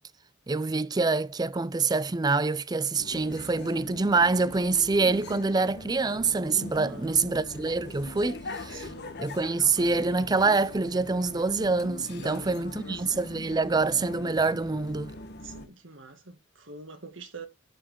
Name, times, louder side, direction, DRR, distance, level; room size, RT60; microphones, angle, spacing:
voice 1, 0.5-8.9 9.2-15.1, right 3 dB, 20° right, 0.4 m, -26 dB
sound 1, 3.0-15.7, left 2 dB, 55° left, 1.3 m, -42 dB
voice 2, 6.8-7.3 8.7-9.1 12.2-13.1 15.4-17.5, right 3 dB, 65° right, 2.1 m, -45 dB
11.5 x 5.0 x 3.8 m
head